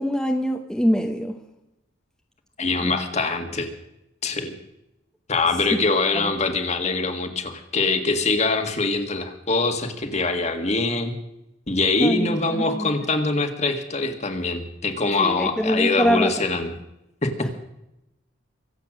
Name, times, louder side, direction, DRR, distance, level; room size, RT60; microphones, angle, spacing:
voice 1, 0.0-1.4 6.1-6.3 12.0-12.9 15.2-16.4, equal, 5° left, 3 dB, 0.9 m, -24 dB
voice 2, 2.6-3.7 4.2-4.5 5.3-11.1 11.7-16.7 17.2-17.5, left 3 dB, 35° left, 6 dB, 1.8 m, -23 dB
24.5 x 8.3 x 6.3 m, 0.88 s
head